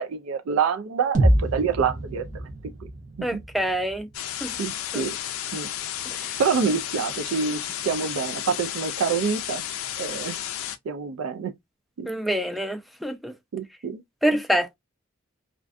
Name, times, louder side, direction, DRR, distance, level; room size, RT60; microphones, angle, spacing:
voice 1, 0.0-2.4 3.3-3.4 4.6-5.2 5.5-5.7 6.4-9.6 10.0-10.4 10.9-11.5 12.0-12.1 13.5-14.0, right 6 dB, 80° right, 0.4 m, -26 dB
sound 1, 1.1-5.1, right 1 dB, 35° right, 0.7 m, -27 dB
voice 2, 3.2-4.1 4.4-4.5 4.9-5.1 6.2-6.3 12.1-13.3 14.2-14.8, equal, ahead, 0.3 m, -26 dB
sound 2, 4.1-10.8, left 11 dB, 75° left, 0.3 m, -32 dB
2.5 x 2.2 x 2.4 m
head